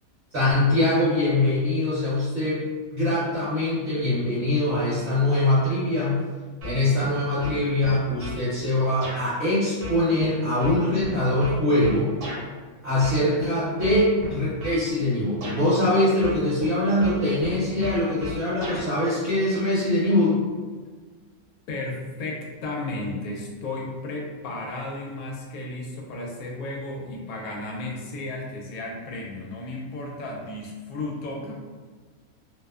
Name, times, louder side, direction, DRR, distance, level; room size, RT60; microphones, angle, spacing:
voice 1, 0.3-2.6 2.9-6.2 6.6-12.1 12.8-20.4, left 1 dB, 45° right, -11 dB, 1.1 m, -23 dB
sound 1, 6.6-7.1 7.4-8.4 9.0-9.2 9.8-12.4 13.0-13.4 13.8-14.8 15.4-15.6 16.2-16.7 17.0-18.8, left 1 dB, 70° right, 1.1 m, -35 dB
voice 2, 21.7-31.5, left 2 dB, 80° left, -2 dB, 1.0 m, -34 dB
2.6 x 2.0 x 2.3 m, 1.5 s
omnidirectional pair, 1.5 m